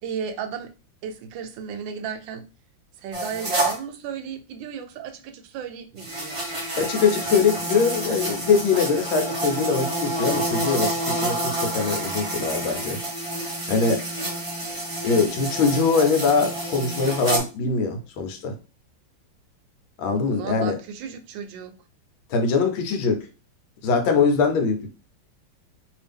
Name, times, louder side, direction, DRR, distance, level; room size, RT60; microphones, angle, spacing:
voice 1, 0.0-0.7 1.0-2.5 3.0-6.4 20.3-21.8, right 7 dB, 80° right, 1.3 m, -34 dB
sound 1, 3.1-3.8 6.0-17.4, right 2 dB, 30° right, 0.6 m, -28 dB
voice 2, 6.8-13.0 13.7-14.0 15.0-18.5 20.0-20.8 22.3-23.2 23.8-24.9, left 5 dB, 90° left, 1.6 m, -22 dB
3.2 x 2.7 x 3.4 m
omnidirectional pair, 2.1 m